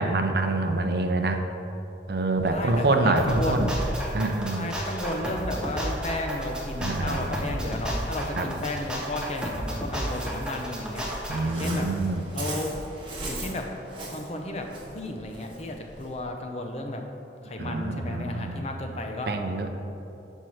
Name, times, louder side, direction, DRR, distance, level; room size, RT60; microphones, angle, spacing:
voice 1, 0.0-1.5 2.1-3.7 4.1-4.7 6.8-7.5 8.4-8.5 11.3-12.2 17.6-18.6 19.3-19.7, right 2 dB, 60° right, 5 dB, 0.5 m, -26 dB
Waves surf, 2.4-16.2, right 1 dB, 25° right, 1.1 m, -40 dB
voice 2, 2.5-3.8 4.6-11.1 11.4-11.9 12.3-12.7 13.3-13.7 14.1-14.7 14.9-17.0 17.4-19.3, left 1 dB, 35° left, 3 dB, 0.6 m, -33 dB
sound 1, 3.2-11.4, equal, 5° right, 0.9 m, -32 dB
5.5 x 4.5 x 6.3 m, 2.9 s
head